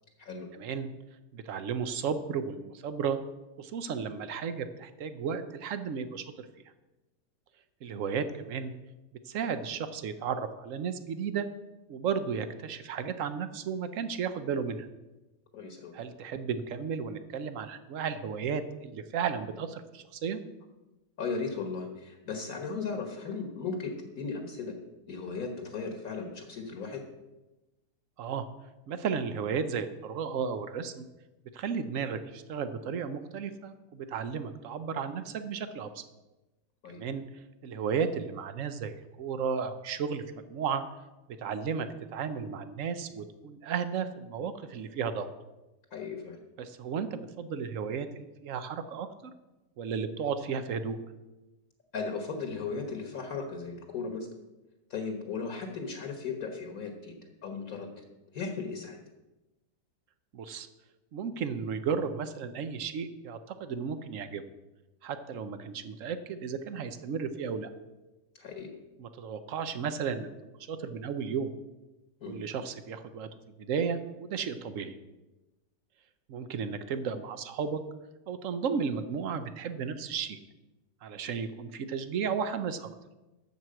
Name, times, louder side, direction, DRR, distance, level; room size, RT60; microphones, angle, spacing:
voice 1, 0.6-0.9 1.3-3.2 3.6-6.5 7.8-8.7 9.2-11.5 11.9-14.9 15.9-20.4 28.2-28.5 28.9-31.1 31.5-36.0 36.9-37.2 37.6-40.2 40.5-40.8 41.3-45.3 46.6-49.1 49.8-51.0 60.3-60.7 61.1-64.4 65.0-67.7 69.0-70.3 70.7-71.5 72.3-73.3 73.6-74.9 76.3-77.8 78.3-80.4 81.0-82.9, right 6 dB, 60° right, 11 dB, 0.9 m, -34 dB
voice 2, 15.5-15.9 21.2-24.7 25.1-27.0 36.8-37.0 45.9-46.4 51.9-54.3 54.9-57.1 57.4-58.0 58.3-59.0 68.3-68.7 72.2-72.4, left 4 dB, 55° left, 4 dB, 1.5 m, -36 dB
12.5 x 4.6 x 7.7 m, 1.1 s
omnidirectional pair, 1.8 m